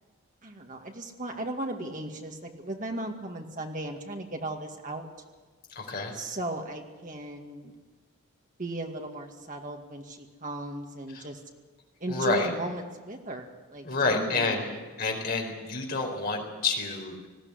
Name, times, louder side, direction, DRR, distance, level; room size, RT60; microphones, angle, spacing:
voice 1, 0.4-5.1 6.1-7.7 8.6-11.4 12.0-14.8, right 1 dB, 35° right, 2 dB, 2.2 m, -36 dB
voice 2, 5.7-6.2 11.1-11.3 12.1-12.5 13.8-14.7 15.0-17.3, left 3 dB, 40° left, 1 dB, 4.4 m, -29 dB
20.0 x 15.5 x 9.9 m, 1.3 s
head